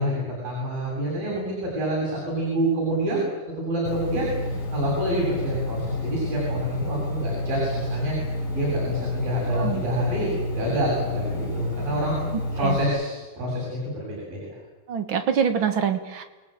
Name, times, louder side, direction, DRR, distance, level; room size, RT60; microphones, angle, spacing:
voice 1, 0.0-3.2 3.6-8.1 8.5-10.3 10.5-12.2 12.6-14.6, right 1 dB, 75° right, -3 dB, 9.2 m, -27 dB
Engine, 3.9-12.8, left 1 dB, 85° left, 6.4 m, -29 dB
voice 2, 9.5-9.8 12.6-12.8 14.9-16.2, right 7 dB, 50° right, 7 dB, 1.6 m, -25 dB
28.5 x 19.5 x 9.1 m, 1.2 s
omnidirectional pair, 4.1 m